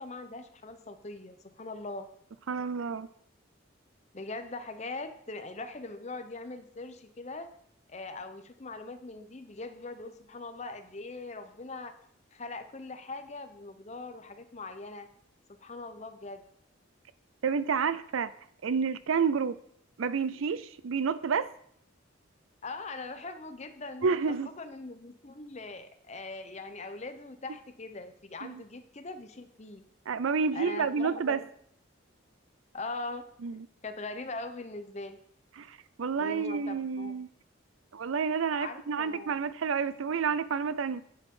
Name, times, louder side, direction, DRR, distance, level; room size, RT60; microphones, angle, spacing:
voice 1, 0.0-2.1 4.1-7.5 7.9-11.9 12.3-15.1 15.6-16.4 22.6-24.2 24.5-29.8 30.5-31.4 32.7-33.2 33.8-35.2 36.2-37.1 38.6-39.4, left 3 dB, 35° left, 0.8 m, -41 dB
voice 2, 2.5-3.1 17.4-18.3 18.6-19.6 20.0-21.5 24.0-24.5 28.4-28.6 30.1-31.4 33.4-33.7 35.6-37.3 37.9-41.0, right 5 dB, 80° right, 0.5 m, -29 dB
10.5 x 7.7 x 3.8 m
head